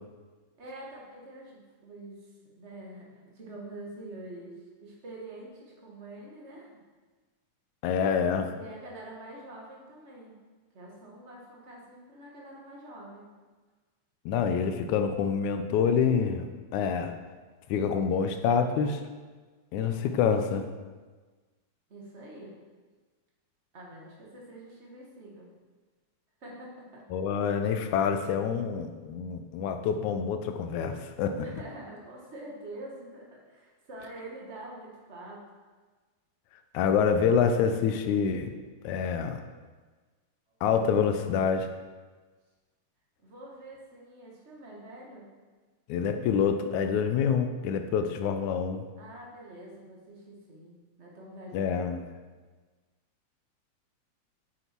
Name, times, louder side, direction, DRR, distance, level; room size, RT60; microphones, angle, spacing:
voice 1, 0.6-6.8 8.4-10.3 10.7-13.3 21.9-22.5 23.7-25.5 26.4-27.0 31.4-35.4 39.1-39.4 40.5-40.6 43.2-45.3 49.0-51.9, right 1 dB, 30° right, -3 dB, 1.5 m, -46 dB
voice 2, 7.8-8.5 14.3-16.5 16.7-17.2 17.7-19.0 19.7-20.6 27.1-31.5 36.7-38.5 38.8-39.4 40.6-41.7 45.9-48.8 51.5-52.0, left 6 dB, 90° left, 7 dB, 2.1 m, -26 dB
9.1 x 6.6 x 4.5 m, 1.3 s
omnidirectional pair, 3.4 m